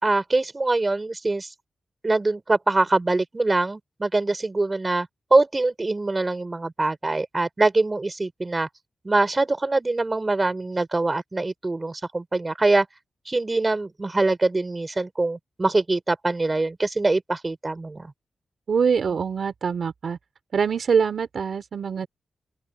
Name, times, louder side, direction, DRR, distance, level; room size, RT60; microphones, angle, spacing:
voice 1, 0.0-1.5 2.0-8.7 9.0-12.9 13.3-18.1, right 2 dB, 25° right, 5.2 m, -23 dB
voice 2, 18.7-20.2 20.5-22.1, right 6 dB, 65° right, 2.7 m, -24 dB
open air
wide cardioid pair, 95°, 0 cm